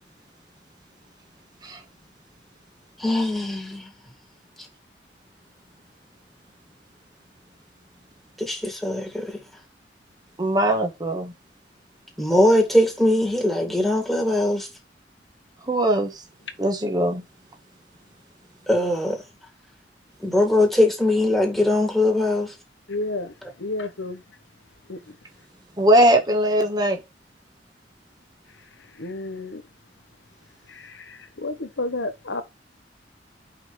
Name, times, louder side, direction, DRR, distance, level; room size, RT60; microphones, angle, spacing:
voice 1, 3.0-3.9 8.4-9.4 12.2-14.7 18.7-19.2 20.2-22.5 23.4-23.5, left 1 dB, ahead, 2.0 m, -21 dB
voice 2, 10.4-11.3 15.7-16.2 16.6-17.2 25.8-27.0, right 1 dB, 25° right, 1.2 m, -20 dB
voice 3, 22.9-23.3 23.6-24.2 24.9-25.0 29.0-29.6 31.4-32.4, left 2 dB, 90° left, 1.2 m, -30 dB
5.3 x 4.8 x 6.2 m
head